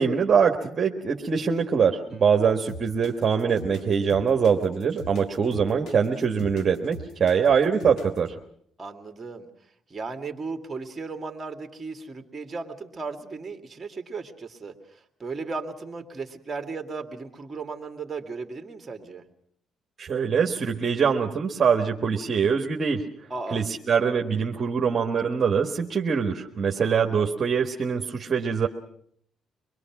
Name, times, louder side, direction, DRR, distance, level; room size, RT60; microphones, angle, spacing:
voice 1, 0.0-8.3 20.0-23.0 23.5-28.7, right 6 dB, 45° right, 2 dB, 1.5 m, -23 dB
voice 2, 2.1-2.4 8.8-9.5 9.9-19.2 23.3-23.6 26.8-27.3, right 4 dB, 25° right, 5 dB, 2.3 m, -36 dB
sound 1, 2.7-8.3, left 2 dB, 75° left, 1.9 m, -41 dB
25.0 x 21.5 x 6.0 m, 0.65 s
cardioid pair, 90°, 0 cm